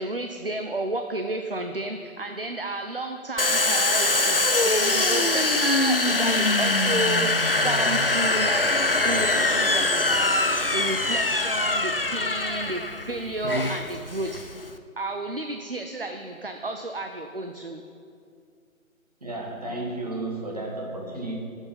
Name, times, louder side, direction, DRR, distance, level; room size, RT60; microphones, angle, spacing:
voice 1, 0.0-14.6 15.0-17.8, right 2 dB, 45° right, 5 dB, 0.5 m, -32 dB
Domestic sounds home sounds, 3.4-14.8, left 2 dB, 45° left, 0.5 m, -23 dB
voice 2, 19.2-21.4, right 2 dB, 30° right, -1 dB, 1.4 m, -32 dB
18.0 x 7.2 x 5.3 m, 2.4 s
figure-of-eight pair, 175°, 42 cm